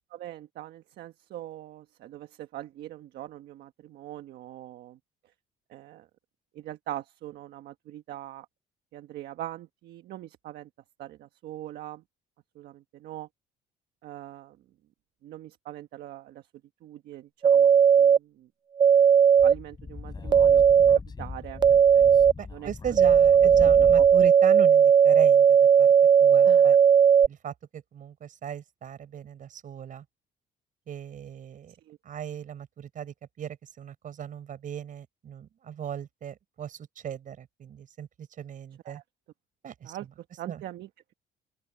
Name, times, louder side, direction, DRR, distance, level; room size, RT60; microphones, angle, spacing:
voice 1, 0.1-5.0 5.7-6.1 6.5-8.5 8.9-10.7 11.0-12.0 12.5-13.3 14.0-14.6 15.2-16.4 16.8-18.5 19.4-20.6 21.2-21.6 22.5-22.7 23.6-24.0 26.4-26.7 31.7-32.0 38.8-39.0 39.8-40.1 40.4-41.1, right 13 dB, 70° right, 1.4 m, -42 dB
sound 1, 17.4-18.2 18.8-19.5 20.3-21.0 21.6-22.3 23.0-27.3, right 7 dB, 25° right, 0.4 m, -17 dB
Speech / Wind, 19.4-24.3, left 4 dB, 25° left, 4.4 m, -39 dB
voice 2, 22.4-25.9 26.2-26.8 27.3-30.1 30.9-31.7 32.0-39.0 39.6-40.0 40.5-40.6, right 9 dB, 50° right, 6.9 m, -38 dB
open air
cardioid pair, 110°, 17 cm